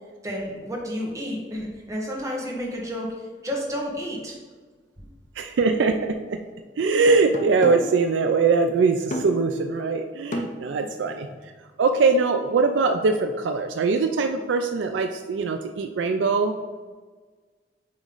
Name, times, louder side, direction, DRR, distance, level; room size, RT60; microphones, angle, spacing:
voice 1, 0.2-4.4 5.0-5.1, equal, 20° right, -2 dB, 1.1 m, -31 dB
voice 2, 5.4-6.4 6.8-11.5 11.8-16.6, right 4 dB, 80° right, 6 dB, 0.4 m, -22 dB
sound 1, 5.7-5.9 6.8-8.0 9.1-9.5 10.3-11.6, left 1 dB, 40° left, 0.6 m, -33 dB
8.5 x 3.1 x 3.8 m, 1.4 s
head